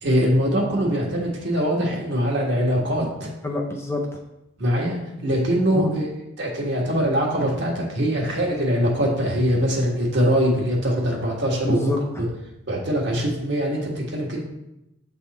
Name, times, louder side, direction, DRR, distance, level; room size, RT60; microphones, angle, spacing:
voice 1, 0.0-3.3 4.6-6.1 6.4-11.9 12.2-12.3 12.7-14.4, equal, 55° right, -2 dB, 1.5 m, -22 dB
voice 2, 3.4-4.2 11.6-12.3, left 1 dB, 10° left, 0 dB, 0.5 m, -27 dB
7.6 x 3.5 x 4.1 m, 0.89 s
head